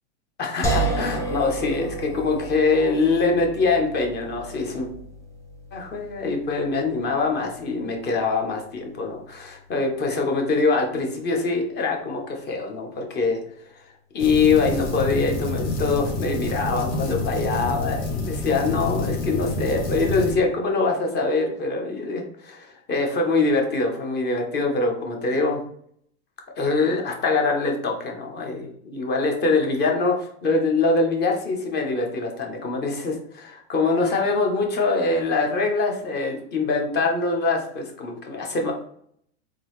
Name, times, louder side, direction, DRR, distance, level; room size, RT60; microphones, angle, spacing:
voice 1, 0.4-4.9 5.7-13.4 14.1-25.6 26.6-38.7, left 3 dB, 30° left, 2 dB, 0.9 m, -24 dB
sound 1, 0.6-13.7, right 2 dB, 10° left, 0.5 m, -34 dB
sound 2, 14.2-20.3, left 2 dB, 70° left, 1.4 m, -28 dB
3.7 x 2.8 x 3.1 m, 0.65 s
supercardioid pair, 130°, 35 cm